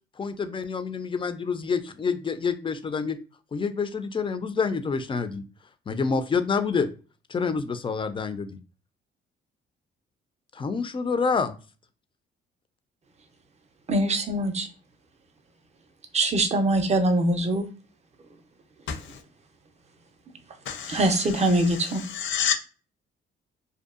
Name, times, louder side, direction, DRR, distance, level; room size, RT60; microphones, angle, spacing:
voice 1, 0.2-3.2 3.5-5.4 5.9-6.9 7.3-8.5 10.5-11.5, left 5 dB, 25° left, 0.4 m, -27 dB
voice 2, 13.9-14.7 16.1-17.7 20.9-22.0, right 1 dB, 35° right, 0.5 m, -23 dB
voice 3, 20.7-22.5, left 8 dB, 70° left, 0.6 m, -30 dB
2.6 x 2.3 x 2.4 m
cardioid pair, 90°, 20 cm